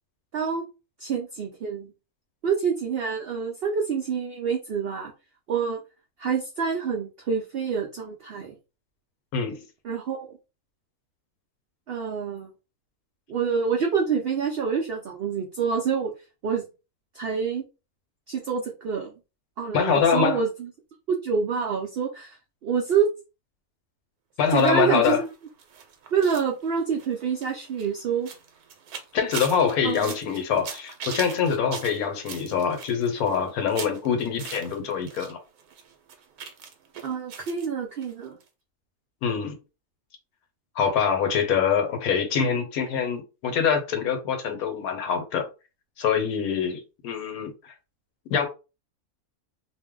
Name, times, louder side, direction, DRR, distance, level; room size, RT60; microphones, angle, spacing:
voice 1, 1.0-1.9 2.4-5.1 5.5-5.8 6.2-8.6 9.8-10.4 11.9-12.5 13.3-16.1 16.4-16.6 17.1-17.6 18.3-19.1 19.6-20.7 21.1-22.4 22.6-23.1 24.5-25.3 26.1-28.3 29.8-30.2 37.0-38.4, right 6 dB, 65° right, 0.5 m, -27 dB
voice 2, 9.3-9.6 19.7-20.4 24.4-25.2 29.1-35.4 39.2-39.6 40.8-45.4 46.0-47.7 48.3-48.5, left 7 dB, 75° left, 1.1 m, -24 dB
sound 1, 24.5-35.3 35.6-37.7 38.0-38.1 38.4-38.5, right 6 dB, 85° right, 1.1 m, -41 dB
2.6 x 2.1 x 3.6 m
omnidirectional pair, 1.6 m